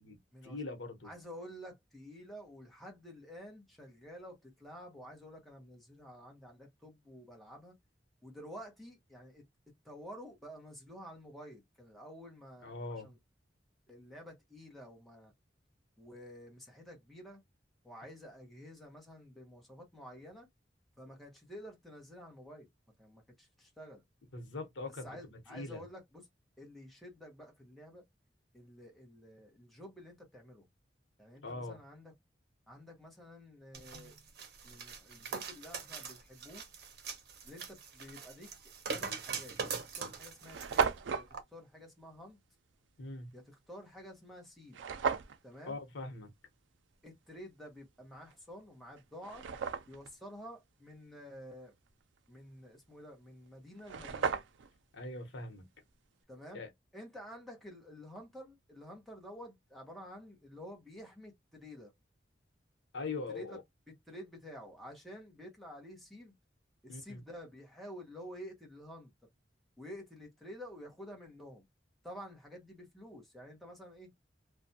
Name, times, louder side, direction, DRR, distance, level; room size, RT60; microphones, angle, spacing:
voice 1, 0.4-1.1 12.6-13.1 24.3-25.8 31.4-31.8 43.0-43.3 45.7-46.3 54.9-55.7 56.5-56.7 62.9-63.6 66.9-67.2, left 3 dB, 80° left, 0.9 m, -42 dB
voice 2, 1.0-7.7 8.2-9.4 9.8-12.8 13.0-13.2 13.9-15.3 16.0-17.4 17.8-20.5 21.0-22.7 23.0-24.0 24.9-26.3 26.6-28.0 28.5-30.6 31.2-32.1 32.7-34.1 34.6-36.6 37.4-38.5 38.9-41.3 41.5-42.4 43.3-44.8 45.4-45.8 47.0-49.5 49.9-51.7 52.3-54.4 56.3-56.6 56.9-61.9 63.3-66.3 66.8-69.1 69.8-71.6 72.0-74.1, equal, ahead, 0.9 m, -50 dB
sound 1, 33.7-40.9 41.3-41.4, right 5 dB, 60° right, 0.7 m, -42 dB
sound 2, 39.1-39.2 39.8-39.9 40.1-40.2 40.4-41.3 44.7-45.4 48.3-48.4 49.0-50.1 53.5-53.6 53.8-54.8, right 6 dB, 85° right, 0.4 m, -34 dB
2.5 x 2.2 x 2.7 m
head